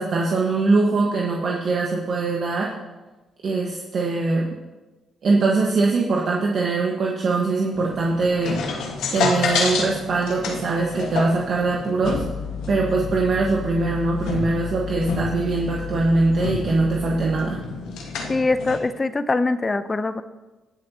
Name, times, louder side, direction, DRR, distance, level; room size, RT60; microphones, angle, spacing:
voice 1, 0.0-2.7 3.4-4.5 5.2-8.6 9.1-12.2 12.7-17.6, right 3 dB, 60° right, -2 dB, 1.4 m, -22 dB
sound 1, 7.7-18.8, left 5 dB, 85° left, 1.5 m, -29 dB
voice 2, 18.3-20.2, left 3 dB, 30° left, 12 dB, 0.6 m, -23 dB
19.0 x 7.1 x 2.9 m, 1.2 s
cardioid pair, 75°, 0 cm